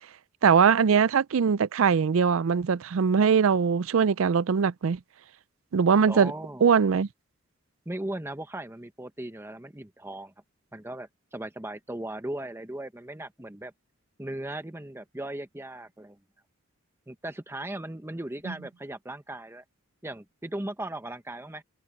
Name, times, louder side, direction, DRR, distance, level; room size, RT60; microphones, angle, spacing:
voice 1, 0.4-5.0 5.7-6.3 6.6-7.1, right 6 dB, 65° right, 0.4 m, -21 dB
voice 2, 6.0-6.6 7.9-10.3 10.7-13.7 14.2-16.2 17.1-19.6 20.0-21.6, right 1 dB, 10° right, 0.9 m, -37 dB
head